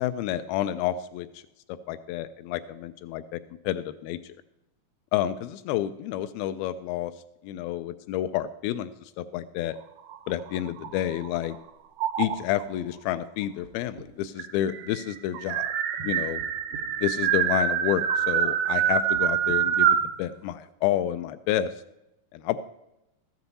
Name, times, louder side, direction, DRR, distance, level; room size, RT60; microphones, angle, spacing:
voice 1, 0.0-1.4 1.9-4.3 5.1-7.1 7.4-9.8 10.3-11.6 12.2-15.7 16.0-16.4 17.0-21.7 22.3-22.6, left 12 dB, 90° left, 11 dB, 2.4 m, -29 dB
sound 1, 10.0-11.5 12.0-12.6 13.6-13.7 14.0-14.1 14.4-20.1, right 9 dB, 75° right, 1.7 m, -26 dB
14.0 x 9.3 x 4.1 m, 0.88 s
omnidirectional pair, 4.2 m